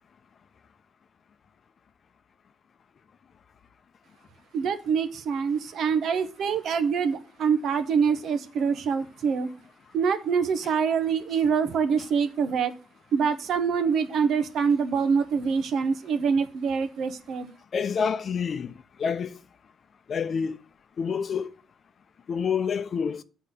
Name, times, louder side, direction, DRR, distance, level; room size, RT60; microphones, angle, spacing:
voice 1, 4.5-9.5 9.9-12.7 13.1-17.5, right 6 dB, 70° right, 1.0 m, -25 dB
voice 2, 17.7-19.4 20.1-20.6 21.0-21.5 22.3-23.2, left 6 dB, 50° left, 0.6 m, -28 dB
7.6 x 4.1 x 6.8 m
cardioid pair, 90°, 0 cm